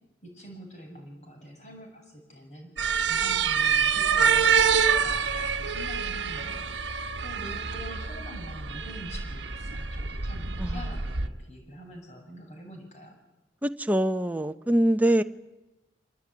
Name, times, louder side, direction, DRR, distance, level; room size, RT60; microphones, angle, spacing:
voice 1, 0.2-2.7 3.1-6.6 7.2-13.2, equal, 40° left, 7.4 m, -45 dB
sound 1, 2.8-11.3, right 6 dB, 75° right, 1.2 m, -26 dB
voice 2, 13.6-15.2, right 1 dB, 10° right, 0.8 m, -24 dB
26.5 x 20.0 x 9.6 m
head